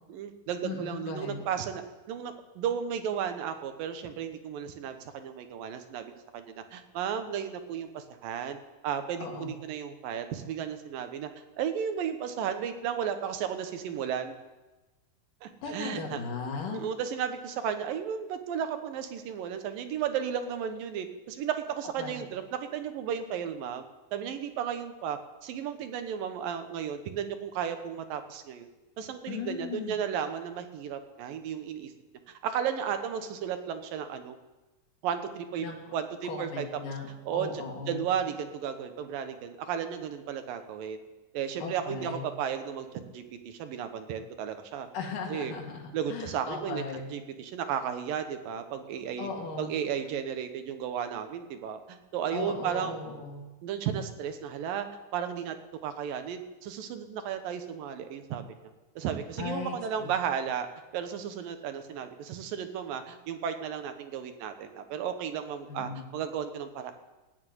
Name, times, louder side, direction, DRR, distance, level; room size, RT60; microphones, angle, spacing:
voice 1, 0.1-1.8 2.1-8.6 8.8-11.3 11.6-14.3 15.4-16.2 16.7-22.4 22.7-23.8 24.1-28.7 29.0-31.9 32.3-34.4 35.0-35.7 35.9-36.7 37.3-41.0 41.3-44.9 45.3-45.5 45.9-46.8 47.1-49.3 49.6-52.9 53.6-54.9 55.1-55.6 55.8-58.6 59.0-60.7 60.9-66.9, right 8 dB, 80° right, 8 dB, 2.8 m, -34 dB
voice 2, 0.6-1.4 9.2-9.5 15.6-16.8 22.0-22.2 29.3-30.0 35.6-35.8 36.2-38.0 41.6-42.2 44.9-47.1 49.2-49.7 52.3-53.4 59.4-60.1 65.7-66.0, left 5 dB, 70° left, 0 dB, 3.7 m, -37 dB
15.5 x 9.9 x 9.5 m, 1.1 s
omnidirectional pair, 4.0 m